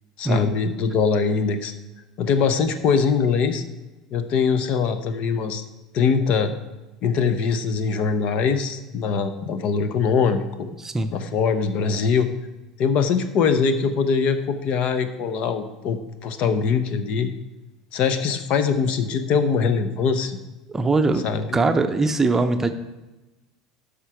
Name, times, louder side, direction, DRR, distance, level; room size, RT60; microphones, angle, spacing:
voice 1, 0.2-1.7 2.2-3.6 4.1-5.6 5.9-6.5 7.0-10.7 11.1-12.3 12.8-17.3 17.9-20.4 21.2-21.6, left 5 dB, 45° left, 10 dB, 0.8 m, -22 dB
voice 2, 10.8-11.1 20.7-21.3 21.5-22.7, right 3 dB, 15° right, 8 dB, 0.7 m, -21 dB
12.5 x 5.1 x 4.5 m, 1.1 s
figure-of-eight pair, 70°, 2 cm